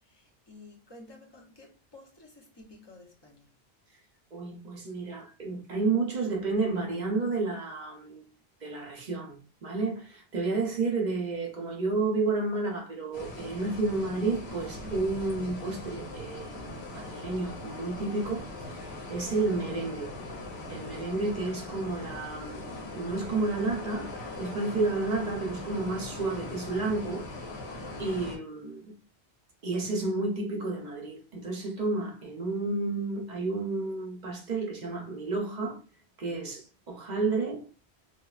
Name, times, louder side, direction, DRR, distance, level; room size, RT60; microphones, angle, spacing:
voice 1, 0.0-3.5, left 2 dB, 30° left, 0.7 m, -52 dB
voice 2, 4.3-8.3 8.6-20.1 20.7-22.6 22.9-24.1 24.4-27.3 28.0-28.9 29.6-35.8 36.2-37.7, right 3 dB, 50° right, 0.7 m, -31 dB
sound 1, 13.1-28.4, left 2 dB, 75° left, 1.1 m, -40 dB
2.9 x 2.3 x 2.3 m
omnidirectional pair, 1.1 m